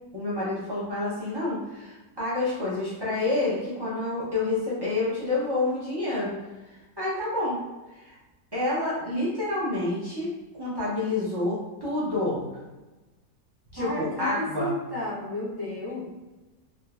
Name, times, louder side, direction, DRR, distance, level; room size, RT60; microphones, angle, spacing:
voice 1, 0.1-6.3 6.7-7.6 7.9-8.1 8.5-10.3 10.6-12.4 13.7-14.7, left 2 dB, 35° right, -10 dB, 0.4 m, -28 dB
voice 2, 13.8-16.1, left 1 dB, 25° left, -9 dB, 0.4 m, -32 dB
3.7 x 2.1 x 2.4 m, 1.1 s
omnidirectional pair, 1.8 m